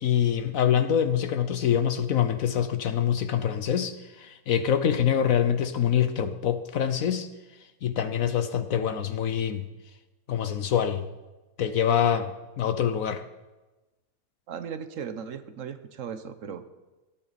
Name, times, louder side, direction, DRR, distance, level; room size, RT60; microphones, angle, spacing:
voice 1, 0.0-7.3 7.8-9.7 10.3-11.0 11.6-13.2, left 9 dB, 65° left, 10 dB, 1.1 m, -25 dB
voice 2, 14.5-16.6, right 7 dB, 60° right, 10 dB, 1.3 m, -37 dB
17.5 x 12.0 x 4.1 m, 1.1 s
omnidirectional pair, 1.6 m